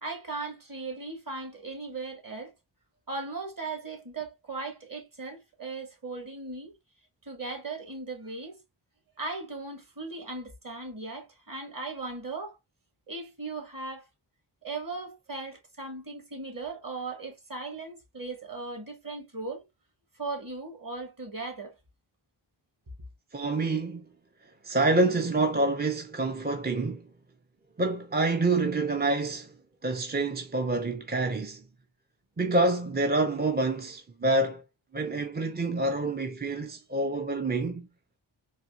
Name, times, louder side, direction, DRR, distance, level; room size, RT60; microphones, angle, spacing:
voice 1, 0.0-2.5 3.1-6.7 7.2-8.6 9.2-12.6 13.1-14.0 14.6-19.6 20.2-21.7, right 3 dB, 45° right, 1.8 m, -38 dB
voice 2, 23.3-24.1 24.6-27.1 27.8-29.5 29.8-31.6 32.4-34.6 34.9-37.9, right 2 dB, 20° right, 0.5 m, -27 dB
4.0 x 2.8 x 2.5 m
wide cardioid pair, 70°, 48 cm